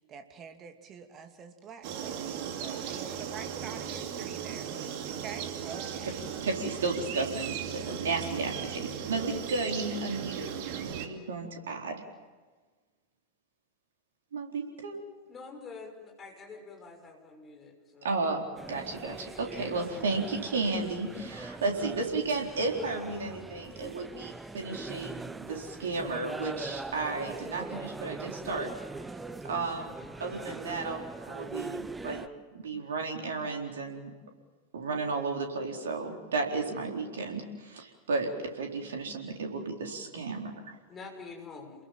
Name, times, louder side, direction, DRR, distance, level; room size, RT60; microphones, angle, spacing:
voice 1, 0.1-4.7 5.0-6.1, right 6 dB, 30° right, 6 dB, 2.6 m, -46 dB
sound 1, 1.8-11.1, right 8 dB, 45° right, 2.7 m, -37 dB
voice 2, 6.4-10.5 10.8-12.0 14.3-15.0 18.0-28.7 29.4-32.3 32.5-34.1 34.7-40.7, right 3 dB, 65° right, 2 dB, 4.2 m, -33 dB
voice 3, 15.3-18.1 40.9-41.8, left 4 dB, 20° left, 2 dB, 6.4 m, -46 dB
sound 2, 18.6-32.3, right 3 dB, 10° right, 1.0 m, -41 dB
29.0 x 21.5 x 7.5 m, 1.3 s
figure-of-eight pair, 90°, 0 cm